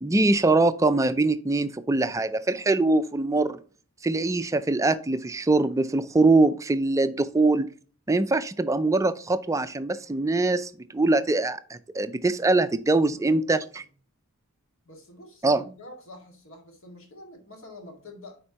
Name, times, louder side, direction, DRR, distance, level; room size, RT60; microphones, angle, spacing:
voice 1, 0.0-3.6 4.0-7.7 8.1-13.8 15.4-15.6, right 2 dB, 15° right, 0.4 m, -23 dB
voice 2, 13.1-13.9 14.8-18.4, left 1 dB, 60° left, 2.0 m, -47 dB
9.9 x 4.3 x 2.9 m
head